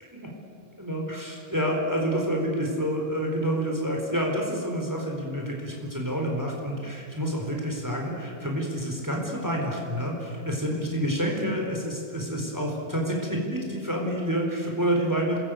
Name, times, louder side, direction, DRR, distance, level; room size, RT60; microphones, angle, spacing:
voice 1, 0.8-15.4, equal, 15° right, 0 dB, 4.3 m, -28 dB
28.0 x 20.0 x 9.2 m, 2.5 s
omnidirectional pair, 1.5 m